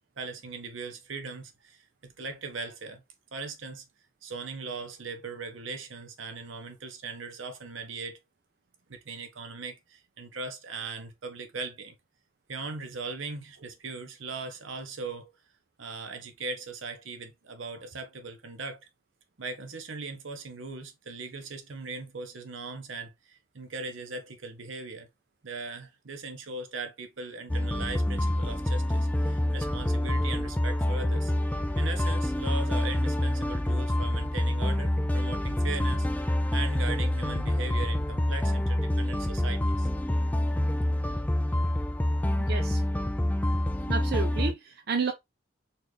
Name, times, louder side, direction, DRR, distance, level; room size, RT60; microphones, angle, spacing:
voice 1, 0.2-3.0 3.3-3.8 4.2-8.2 8.9-11.9 12.5-15.3 15.8-18.8 19.4-25.1 25.4-31.3 31.8-39.9, right 4 dB, 80° right, 0.9 m, -39 dB
sound 1, 27.5-44.5, left 1 dB, 10° left, 0.3 m, -27 dB
voice 2, 42.5-42.8 43.9-45.1, right 5 dB, 50° right, 0.5 m, -31 dB
4.0 x 2.5 x 3.2 m
head